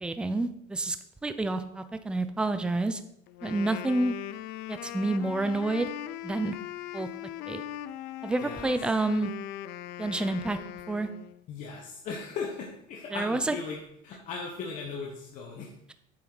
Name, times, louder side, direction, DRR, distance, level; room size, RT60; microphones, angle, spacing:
voice 1, 0.0-1.0 1.2-3.0 3.4-4.1 4.7-5.9 6.2-6.5 6.9-7.1 7.5-7.6 8.2-9.3 10.0-10.6 10.9-11.1 13.1-13.5, right 2 dB, 5° right, 10 dB, 0.5 m, -28 dB
Wind instrument woodwind instrument, 3.3-11.4, left 13 dB, 60° left, 0.5 m, -40 dB
voice 2, 8.4-8.7 11.5-15.7, left 5 dB, 40° left, -1 dB, 1.3 m, -38 dB
8.7 x 7.4 x 4.0 m, 0.75 s
cardioid pair, 160°, 19 cm